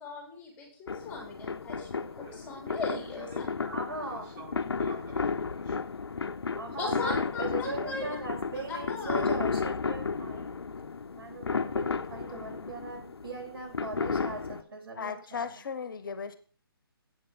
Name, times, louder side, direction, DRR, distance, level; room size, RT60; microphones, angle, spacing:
voice 1, 0.0-3.5 6.8-8.1 8.7-9.3, left 3 dB, 10° left, -1 dB, 3.4 m, -38 dB
sound 1, 0.9-14.6, left 5 dB, 85° left, 0.6 m, -33 dB
voice 2, 2.1-5.9, equal, 35° right, -2 dB, 5.1 m, -49 dB
voice 3, 3.7-4.3 6.6-10.6 11.2-15.5, right 3 dB, 65° right, 2 dB, 4.2 m, -40 dB
voice 4, 15.0-16.4, left 6 dB, 55° left, 12 dB, 1.1 m, -36 dB
8.8 x 6.7 x 5.7 m, 0.42 s
hypercardioid pair, 150°, 13 cm